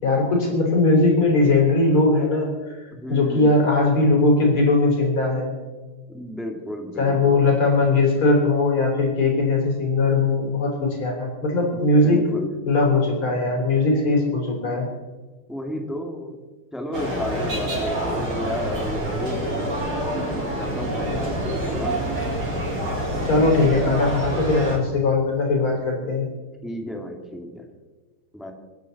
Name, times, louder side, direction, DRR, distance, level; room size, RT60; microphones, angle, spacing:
voice 1, 0.0-2.5 3.1-5.5 7.0-12.2 12.7-14.9 23.2-26.3, left 3 dB, 80° left, -1 dB, 4.9 m, -19 dB
voice 2, 2.9-3.6 6.1-7.5 12.0-12.5 15.5-16.4 16.7-19.7 20.1-22.0 26.6-27.6 28.3-28.5, left 1 dB, ahead, 2 dB, 2.0 m, -33 dB
sound 1, 16.9-24.8, right 1 dB, 90° right, 4.1 m, -26 dB
27.0 x 10.5 x 4.1 m, 1.4 s
omnidirectional pair, 2.3 m